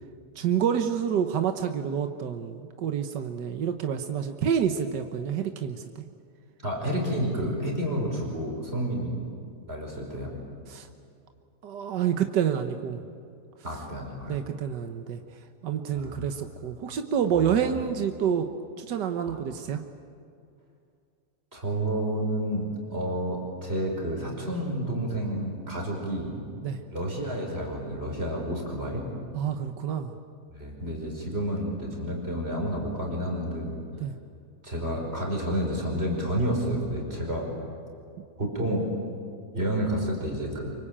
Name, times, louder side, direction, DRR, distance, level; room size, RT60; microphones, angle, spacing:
voice 1, 0.3-6.0 10.7-10.9 11.6-13.0 14.3-15.2 15.6-18.5 18.8-19.8 26.6-26.8 29.3-30.1 34.0-34.1, right 8 dB, 90° right, 6 dB, 1.7 m, -28 dB
voice 2, 6.6-9.2 9.7-10.3 13.6-14.4 15.9-16.3 17.3-17.8 19.3-19.4 21.5-26.4 26.9-29.0 30.5-33.8 34.6-37.5 38.4-38.9 39.5-40.7, right 1 dB, 35° right, 0 dB, 5.7 m, -30 dB
26.0 x 24.0 x 8.8 m, 2.4 s
omnidirectional pair, 1.8 m